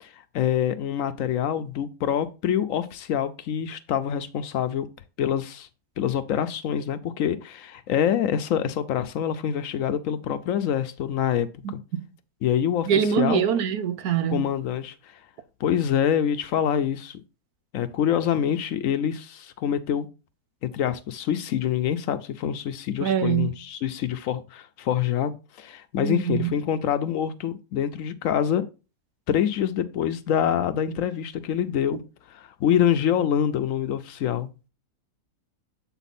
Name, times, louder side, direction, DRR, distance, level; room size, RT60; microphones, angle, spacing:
voice 1, 0.3-4.9 5.2-5.7 6.0-11.8 12.4-12.9 13.2-13.4 14.3-14.9 15.6-17.2 17.7-20.1 20.6-28.6 29.3-32.0 32.3-34.5, left 9 dB, 70° left, 0.9 m, -25 dB
voice 2, 12.9-14.5 23.0-23.5 26.0-26.5, right 9 dB, 80° right, 1.3 m, -24 dB
8.1 x 3.8 x 4.2 m
omnidirectional pair, 1.6 m